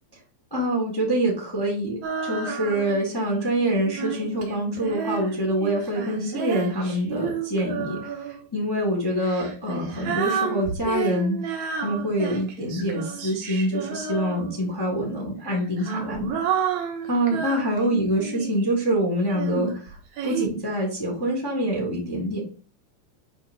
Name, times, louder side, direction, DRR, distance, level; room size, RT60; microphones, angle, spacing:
voice 1, 0.5-11.4 11.8-16.6 17.1-20.0 20.2-22.4, right 1 dB, 15° left, -1 dB, 0.8 m, -26 dB
Female singing, 2.0-3.1 3.6-8.4 9.2-14.8 15.5-18.7 19.3-20.5, right 6 dB, 70° right, 1.8 m, -31 dB
8.8 x 4.6 x 3.8 m, 0.39 s
omnidirectional pair, 5.3 m